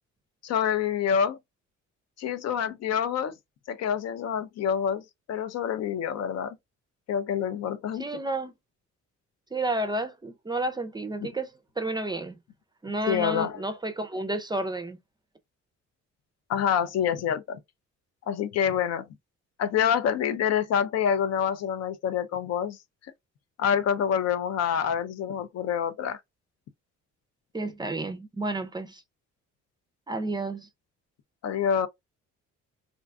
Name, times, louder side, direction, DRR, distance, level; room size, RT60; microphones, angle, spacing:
voice 1, 0.4-1.4 2.2-3.4 3.7-5.0 5.3-6.6 7.1-8.0 13.1-13.6 16.5-17.6 18.3-19.1 19.6-22.8 23.6-26.2 31.4-31.9, left 8 dB, 60° left, 0.4 m, -27 dB
voice 2, 8.0-8.5 9.5-12.4 12.8-15.0 27.5-29.0 30.1-30.7, right 2 dB, 15° right, 0.4 m, -31 dB
2.5 x 2.2 x 2.3 m
cardioid pair, 90°, 30 cm